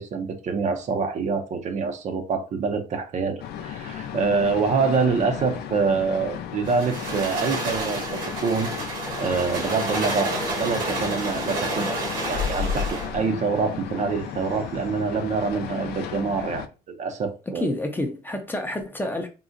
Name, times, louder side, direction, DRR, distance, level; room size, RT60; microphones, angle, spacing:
voice 1, 0.0-8.7 9.2-17.7, right 4 dB, 45° right, 0.5 m, -26 dB
sound 1, 3.4-16.7, left 8 dB, 75° left, 0.4 m, -34 dB
sound 2, 6.6-13.1, right 2 dB, 85° right, 1.6 m, -30 dB
sound 3, 9.8-15.2, right 2 dB, 65° right, 1.3 m, -46 dB
voice 2, 17.5-19.3, left 1 dB, 10° left, 0.5 m, -29 dB
3.7 x 2.1 x 2.5 m
cardioid pair, 110°, 17 cm